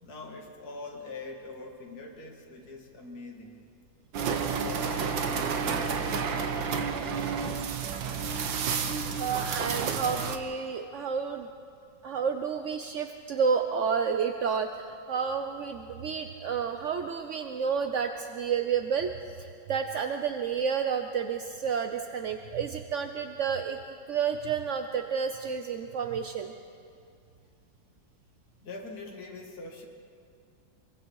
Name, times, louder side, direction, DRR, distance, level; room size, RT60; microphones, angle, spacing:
voice 1, 0.0-3.5 4.3-7.8 28.6-29.9, left 2 dB, 50° left, 0 dB, 2.7 m, -44 dB
sound 1, 4.1-10.4, right 6 dB, 75° right, 1.8 m, -30 dB
voice 2, 9.2-11.5 12.0-19.1 19.4-23.8 24.1-26.5, right 6 dB, 60° right, 6 dB, 0.8 m, -30 dB
27.0 x 22.5 x 4.7 m, 2.3 s
omnidirectional pair, 2.1 m